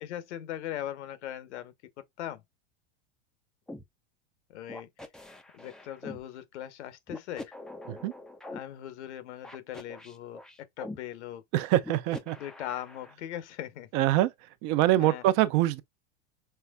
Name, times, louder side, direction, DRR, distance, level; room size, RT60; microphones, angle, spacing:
voice 1, 0.0-2.4 4.5-4.9 5.5-7.5 8.5-10.4 10.8-11.4 12.4-13.9 15.0-15.2, left 12 dB, 85° left, 1.0 m, -39 dB
sound 1, 3.7-3.8 4.7-6.2 7.1-8.6 9.4-11.0 11.8-13.1, left 2 dB, ahead, 0.3 m, -43 dB
voice 2, 11.5-12.4 13.9-14.3 14.6-15.8, right 14 dB, 50° right, 0.6 m, -24 dB
5.6 x 3.3 x 2.2 m
supercardioid pair, 125°, 34 cm